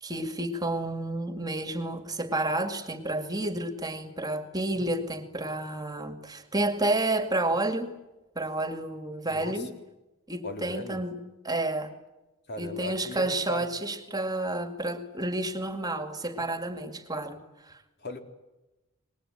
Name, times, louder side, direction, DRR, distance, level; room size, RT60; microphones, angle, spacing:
voice 1, 0.0-8.0 8.4-9.7 10.3-11.1 11.4-11.9 12.6-17.4 17.6-17.8, right 2 dB, 20° right, 2.2 m, -30 dB
voice 2, 9.2-9.7 10.4-11.0 12.5-13.7 18.0-18.2, left 2 dB, 50° left, 3.7 m, -38 dB
26.0 x 21.0 x 9.1 m
head